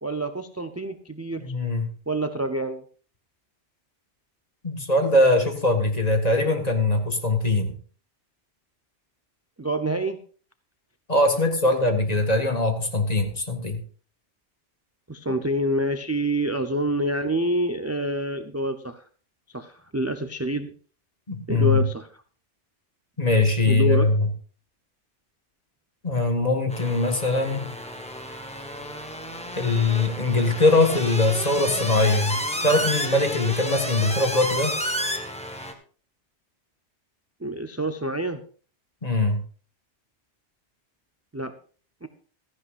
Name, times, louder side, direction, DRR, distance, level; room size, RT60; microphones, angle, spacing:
voice 1, 0.0-1.4 2.1-2.8 9.6-10.2 15.1-19.0 19.5-20.7 21.5-22.1 23.7-24.1 37.4-38.4 41.3-41.5 42.0-42.1, right 1 dB, 20° right, 8 dB, 0.5 m, -27 dB
voice 2, 1.4-1.9 4.6-7.8 11.1-13.8 21.3-21.8 23.2-24.3 26.0-27.7 29.6-34.8 39.0-39.4, left 2 dB, 35° left, 5 dB, 1.7 m, -22 dB
sound 1, 26.7-35.7, equal, 5° left, 1.3 m, -31 dB
15.5 x 14.0 x 2.5 m, 0.41 s
omnidirectional pair, 1.2 m